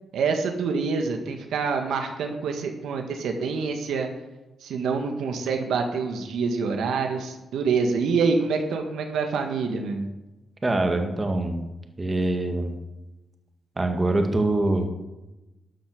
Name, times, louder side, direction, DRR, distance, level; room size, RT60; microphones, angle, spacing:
voice 1, 0.1-4.1 4.6-10.1, right 5 dB, 90° right, 4 dB, 1.6 m, -26 dB
voice 2, 10.6-11.6 12.0-12.8 13.8-14.9, right 2 dB, 25° right, 4 dB, 1.8 m, -24 dB
13.0 x 7.3 x 6.5 m, 1.0 s
cardioid pair, 80°, 0 cm